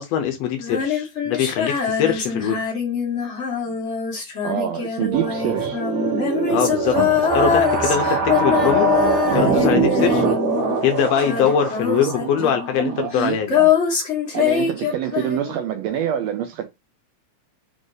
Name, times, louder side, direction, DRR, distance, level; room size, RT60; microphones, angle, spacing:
voice 1, 0.0-2.6 6.5-8.9 9.3-10.2 10.8-13.5, left 8 dB, 75° left, 1.6 m, -22 dB
Female singing, 0.6-10.9 11.2-15.6, left 7 dB, 50° left, 0.8 m, -23 dB
voice 2, 4.4-5.8 10.2-10.3 12.2-12.3 12.8-13.7 14.3-16.7, right 10 dB, 80° right, 1.6 m, -26 dB
sound 1, 5.1-13.4, right 4 dB, 60° right, 1.4 m, -23 dB
5.0 x 2.5 x 3.8 m
omnidirectional pair, 3.4 m